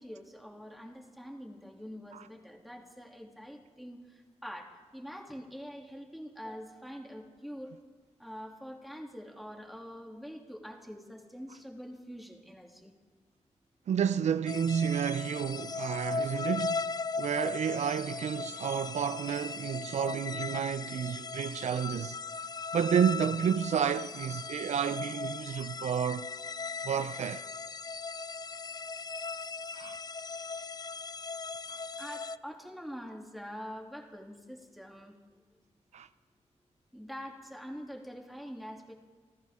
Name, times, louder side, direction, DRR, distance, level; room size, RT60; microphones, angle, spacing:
voice 1, 0.0-7.7 8.2-12.9 32.0-35.4 36.9-38.9, equal, ahead, 2.8 m, -45 dB
voice 2, 13.9-22.2 22.7-26.3 26.8-27.4 29.7-30.0 31.7-31.8 35.9-36.1, right 8 dB, 75° right, 0.5 m, -31 dB
sound 1, 14.5-32.4, left 4 dB, 35° left, 0.4 m, -38 dB
28.0 x 14.0 x 3.7 m
cardioid pair, 65°, 12 cm